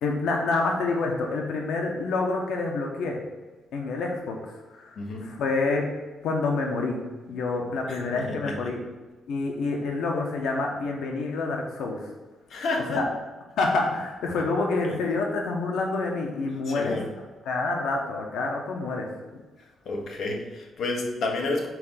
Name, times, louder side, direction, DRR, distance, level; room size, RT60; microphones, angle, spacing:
voice 1, 0.0-3.2 3.7-4.4 4.7-5.8 6.2-8.8 9.3-12.0 12.9-13.0 13.6-17.0 17.4-19.1, left 3 dB, 80° left, 1 dB, 1.3 m, -27 dB
voice 2, 5.0-5.3 7.9-8.6 12.5-13.0 14.8-15.0 16.7-17.1 19.8-21.7, left 2 dB, 55° left, 1 dB, 1.4 m, -30 dB
7.6 x 4.6 x 5.8 m, 1.2 s
cardioid pair, 165°, 0 cm